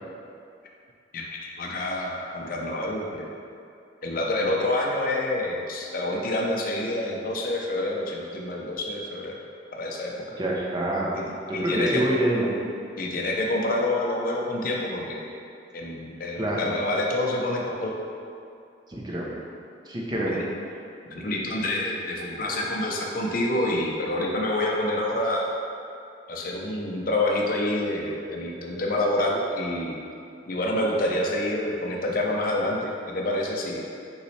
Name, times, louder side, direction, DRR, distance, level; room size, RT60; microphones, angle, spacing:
voice 1, 1.1-3.3 4.0-9.4 9.7-10.1 11.1-11.2 11.5-12.0 13.0-15.2 15.7-17.9 20.2-20.5 21.0-25.5 26.3-30.0 30.5-33.8, left 1 dB, 55° left, -2 dB, 0.5 m, -27 dB
voice 2, 10.4-11.2 11.5-12.5 16.3-16.6 18.9-19.3 19.9-20.3, right 1 dB, 25° right, -4 dB, 0.7 m, -26 dB
5.4 x 3.1 x 3.2 m, 2.5 s
head